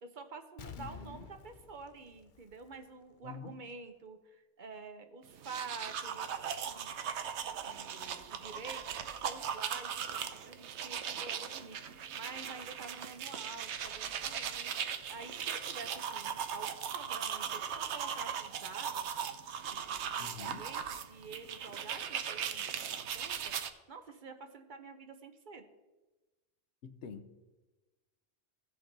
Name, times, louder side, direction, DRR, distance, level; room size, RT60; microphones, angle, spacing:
voice 1, 0.0-6.3 6.6-7.0 7.6-14.8 15.1-19.1 19.7-25.6, right 4 dB, 50° right, 7 dB, 0.9 m, -49 dB
Explosion, 0.6-3.2 3.5-3.6, left 6 dB, 55° left, 0.7 m, -51 dB
voice 2, 0.7-1.3 3.2-3.6 20.2-20.7 26.8-27.4, left 5 dB, 85° left, 10 dB, 1.0 m, -47 dB
sound 1, 5.3-23.7, right 8 dB, 85° right, 0.9 m, -38 dB
15.5 x 5.3 x 4.0 m, 1.1 s
omnidirectional pair, 1.1 m